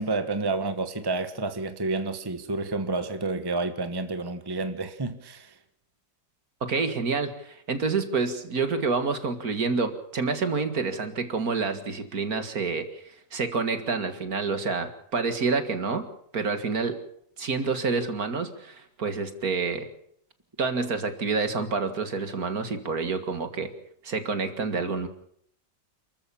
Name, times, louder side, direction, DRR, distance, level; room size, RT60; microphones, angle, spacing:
voice 1, 0.0-5.5, right 3 dB, 15° right, 1.3 m, -29 dB
voice 2, 6.6-13.0 13.3-16.1 16.3-17.0 17.4-19.9 20.6-23.7 24.0-25.1, right 4 dB, 55° right, 2.3 m, -28 dB
28.5 x 14.0 x 7.3 m
omnidirectional pair, 1.9 m